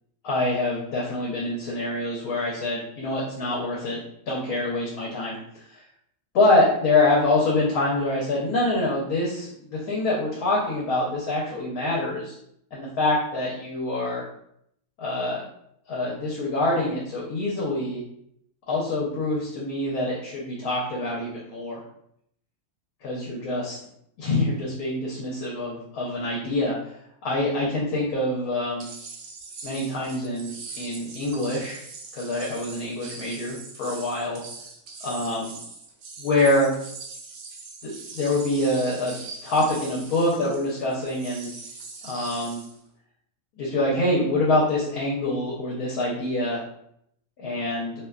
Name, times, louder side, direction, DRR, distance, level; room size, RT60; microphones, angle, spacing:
voice 1, 0.2-4.0 4.3-5.3 5.7-5.8 6.3-12.4 12.7-14.2 15.0-15.4 15.9-18.0 18.7-21.8 23.0-23.8 24.2-26.7 27.2-28.9 29.6-31.8 32.1-34.4 35.0-35.6 36.2-36.7 37.8-39.1 39.4-41.5 42.0-42.6 43.6-46.6 47.4-47.9, left 2 dB, 70° left, -5 dB, 1.0 m, -25 dB
sound 1, 28.8-42.8, right 4 dB, 85° right, 0.5 m, -42 dB
2.7 x 2.1 x 2.3 m, 0.72 s
omnidirectional pair, 1.7 m